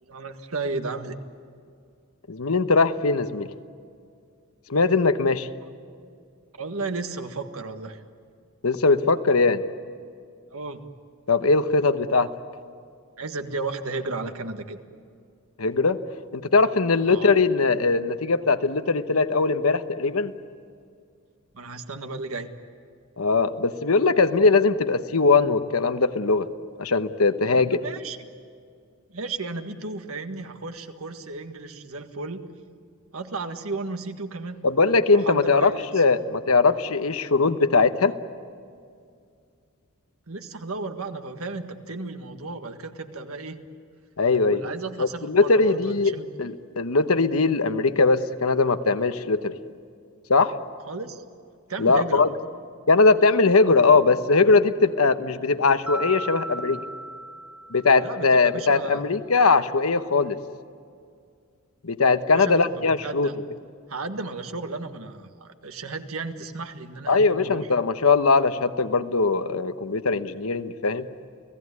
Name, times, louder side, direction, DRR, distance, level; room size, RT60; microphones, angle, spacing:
voice 1, 0.1-1.2 6.6-8.0 10.5-10.9 13.2-14.8 17.0-17.3 21.5-22.5 27.4-28.2 29.1-32.4 33.1-34.6 35.1-36.0 40.3-43.6 44.4-46.2 50.9-51.2 51.7-52.2 58.0-59.0 62.3-63.4 63.9-67.7, right 3 dB, 80° right, 7 dB, 1.7 m, -34 dB
voice 2, 2.3-3.5 4.7-5.5 8.6-9.6 11.3-12.3 15.6-16.0 16.3-20.3 23.2-26.5 26.8-27.8 34.6-38.2 44.2-44.6 45.0-49.6 50.3-50.5 51.8-52.3 52.9-56.8 57.7-60.4 61.8-63.3 67.1-71.1, left 4 dB, 80° left, 10 dB, 1.1 m, -20 dB
Mallet percussion, 55.9-58.2, right 1 dB, 5° right, 0.9 m, -35 dB
30.0 x 17.5 x 9.7 m, 2.3 s
head